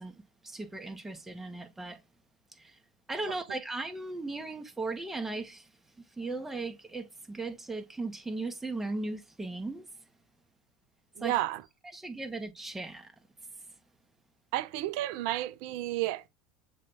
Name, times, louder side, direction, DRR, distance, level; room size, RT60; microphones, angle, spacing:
voice 1, 0.0-2.0 2.6-2.8 3.1-5.7 6.2-9.8 11.2-11.3 11.9-13.1, right 2 dB, 10° right, 1.4 m, -37 dB
voice 2, 11.2-11.6 14.5-16.3, right 14 dB, 65° right, 0.8 m, -31 dB
7.5 x 3.2 x 4.3 m
hypercardioid pair, 80°, 2 cm